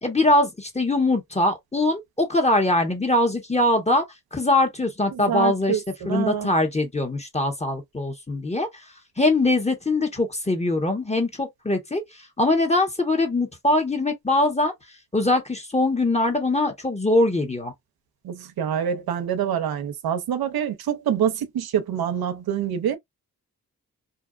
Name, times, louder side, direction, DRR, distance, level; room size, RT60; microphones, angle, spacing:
voice 1, 0.0-4.0 4.3-8.8 9.2-14.7 15.1-17.7, left 2 dB, 20° left, 1.2 m, -22 dB
voice 2, 5.1-6.5 18.2-23.0, right 9 dB, 80° right, 0.6 m, -26 dB
2.7 x 2.1 x 2.3 m
cardioid pair, 40°, 36 cm